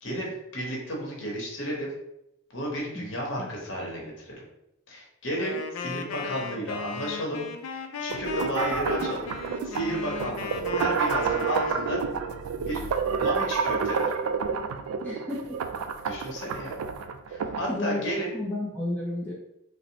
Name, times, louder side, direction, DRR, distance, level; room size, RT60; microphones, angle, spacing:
voice 1, 0.0-1.9 2.5-4.3 4.9-7.4 7.7-9.2 9.6-12.0 12.6-12.8 13.2-14.1 16.0-16.8 17.3-18.3, equal, 60° left, -2 dB, 1.0 m, -32 dB
Wind instrument woodwind instrument, 5.4-12.0, left 5 dB, 80° left, 0.4 m, -36 dB
sound 1, 8.1-17.7, right 5 dB, 90° right, 0.3 m, -29 dB
voice 2, 15.0-15.5 17.7-19.3, left 2 dB, 10° left, -6 dB, 0.5 m, -32 dB
3.9 x 2.0 x 2.8 m, 0.82 s
head